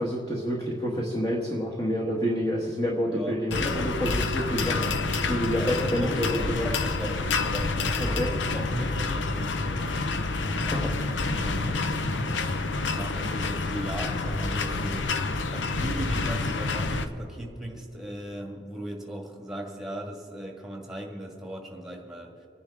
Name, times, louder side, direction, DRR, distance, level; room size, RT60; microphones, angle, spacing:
voice 1, 0.0-6.7 8.0-8.3 10.7-10.9, equal, 20° left, -2 dB, 1.3 m, -28 dB
voice 2, 3.1-3.4 5.6-15.2 15.5-22.5, right 1 dB, ahead, 0 dB, 1.6 m, -38 dB
sound 1, 3.5-17.1, left 3 dB, 80° left, 0.7 m, -28 dB
30.0 x 10.0 x 3.5 m, 2.7 s
head